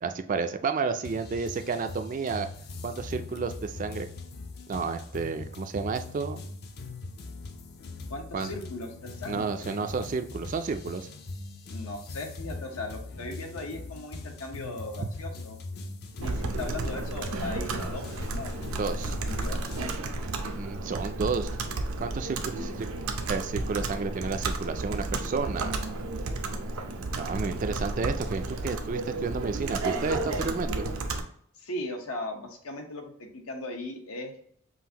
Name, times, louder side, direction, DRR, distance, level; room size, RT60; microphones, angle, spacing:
voice 1, 0.0-2.5 2.8-4.1 4.7-6.4 8.3-8.5 9.3-11.1 15.0-15.1 18.8-19.2 20.4-21.5 22.0-22.9 23.3-25.8 27.2-30.8, right 4 dB, 40° right, 8 dB, 0.3 m, -31 dB
sound 1, 1.0-19.8, left 3 dB, 50° left, 0.5 m, -41 dB
voice 2, 8.1-9.8 11.7-15.6 16.2-18.5 18.9-19.8 31.6-34.3, left 2 dB, 85° left, 3 dB, 0.9 m, -38 dB
Computer keyboard, 16.2-31.2, right 2 dB, 85° right, 0.6 m, -32 dB
5.6 x 2.5 x 2.8 m, 0.64 s
head